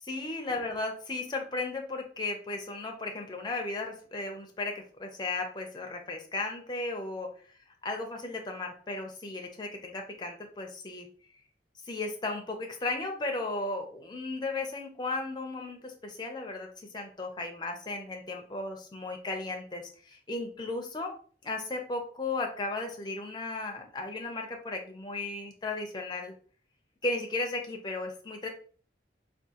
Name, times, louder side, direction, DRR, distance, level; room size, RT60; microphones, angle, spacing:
voice 1, 0.1-7.3 7.8-11.1 11.8-21.1 21.4-26.3 27.0-28.5, left 2 dB, 25° left, 3 dB, 0.5 m, -35 dB
3.6 x 2.4 x 2.8 m, 0.43 s
head